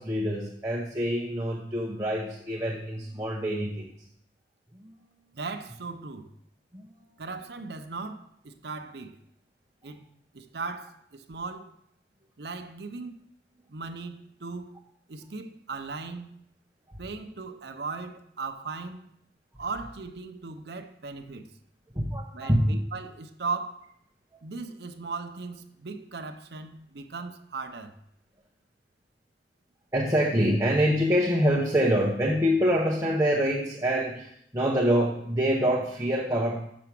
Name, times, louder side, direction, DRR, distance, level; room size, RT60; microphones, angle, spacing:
voice 1, 0.0-3.9 4.7-4.9 6.7-6.9 21.9-22.8 29.9-36.7, equal, 15° right, 0.9 m, -25 dB
voice 2, 5.3-6.3 7.2-9.2 9.8-10.1 10.3-11.7 12.4-13.2 13.7-14.7 15.1-16.4 17.0-19.0 19.6-21.5 22.3-23.9 24.4-27.9, right 4 dB, 70° right, 0.7 m, -37 dB
6.9 x 6.2 x 6.0 m
head